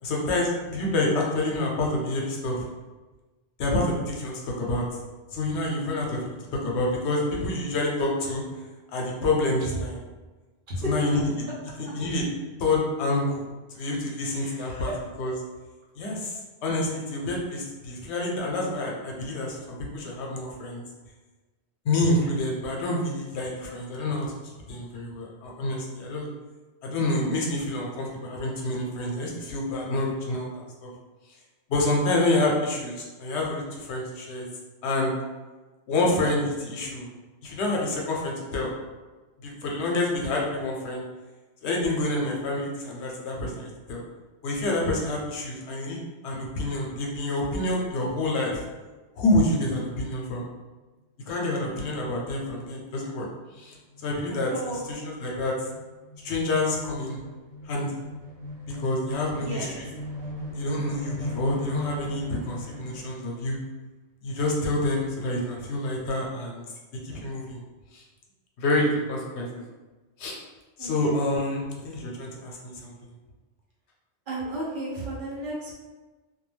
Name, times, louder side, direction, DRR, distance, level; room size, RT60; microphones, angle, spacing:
voice 1, 0.0-2.6 3.6-4.8 5.3-6.4 6.6-8.4 8.9-10.0 10.8-11.4 11.8-12.2 12.6-13.4 13.7-14.9 15.2-15.3 16.0-20.8 21.8-24.3 24.7-26.3 26.8-30.9 31.7-34.5 34.8-35.1 35.9-37.1 37.4-38.7 39.4-41.0 41.6-44.0 44.4-48.6 49.2-50.4 51.3-53.3 53.5-53.8 54.0-55.6 56.2-57.2 57.7-58.0 58.8-59.9 60.5-63.6 64.2-66.6 67.0-67.6 67.9-68.0 68.6-69.6 70.2-70.4 70.8-73.0, left 2 dB, 80° left, -2 dB, 0.9 m, -28 dB
voice 2, 14.4-15.0 54.5-54.8 59.3-59.8 70.8-71.1 74.3-75.7, right 1 dB, 55° right, -5 dB, 0.8 m, -34 dB
sound 1, 53.1-53.2 53.5-63.2, left 1 dB, 90° right, 1.0 m, -38 dB
2.3 x 2.2 x 3.1 m, 1.2 s
omnidirectional pair, 1.1 m